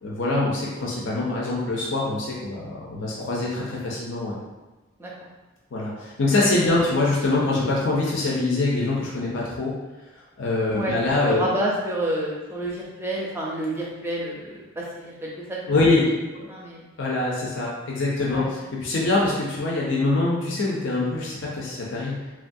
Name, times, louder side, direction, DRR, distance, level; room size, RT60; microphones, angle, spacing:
voice 1, 0.0-4.4 5.7-9.7 10.4-11.5 15.7-16.1 16.4-16.5 17.0-22.2, left 2 dB, 70° left, -4 dB, 0.6 m, -24 dB
voice 2, 11.3-15.6 16.5-16.9 18.3-18.5, right 1 dB, 10° right, -4 dB, 0.4 m, -29 dB
3.0 x 2.3 x 2.6 m, 1.1 s
head